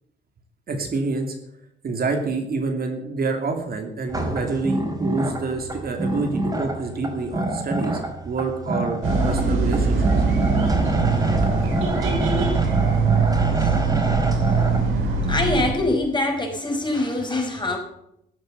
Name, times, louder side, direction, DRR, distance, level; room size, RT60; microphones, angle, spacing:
voice 1, 0.7-1.4 1.8-10.1 10.7-10.8, right 3 dB, 50° right, 4 dB, 2.8 m, -27 dB
sound 1, 4.1-14.8, right 1 dB, 20° right, 4.7 m, -27 dB
sound 2, 9.0-15.7, right 4 dB, 80° right, 4.0 m, -21 dB
voice 2, 15.3-17.8, left 2 dB, 20° left, 2 dB, 5.4 m, -24 dB
14.5 x 8.0 x 8.2 m, 0.78 s
cardioid pair, 90°, 20 cm